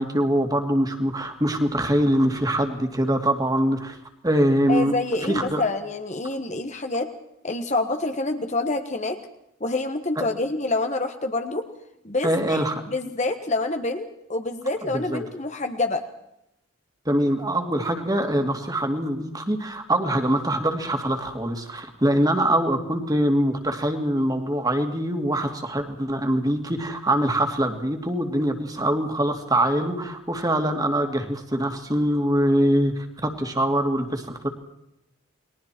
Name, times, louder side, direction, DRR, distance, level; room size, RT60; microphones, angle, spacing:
voice 1, 0.0-4.0 4.2-4.9 5.2-5.6 10.2-10.3 12.2-12.8 14.9-15.2 17.1-34.5, right 1 dB, 20° right, 5 dB, 2.5 m, -23 dB
voice 2, 4.7-7.1 7.4-9.2 9.6-11.7 12.0-16.0, left 2 dB, 35° left, 6 dB, 1.5 m, -27 dB
29.5 x 21.5 x 4.5 m, 0.81 s
head